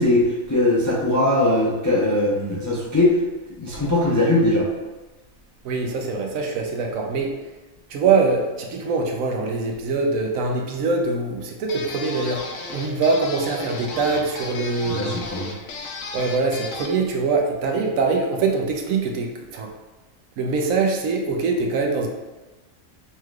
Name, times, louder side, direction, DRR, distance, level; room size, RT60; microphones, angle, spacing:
voice 1, 0.0-3.2 3.6-4.7 14.9-15.5, left 1 dB, 25° left, -5 dB, 0.4 m, -20 dB
voice 2, 5.6-7.4 7.9-12.4 12.7-15.2 16.1-19.7 20.4-22.1, right 4 dB, 85° right, 2 dB, 1.1 m, -23 dB
sound 1, 11.7-17.0, left 3 dB, 80° left, 1.0 m, -35 dB
5.5 x 3.2 x 2.3 m, 1.2 s
omnidirectional pair, 1.4 m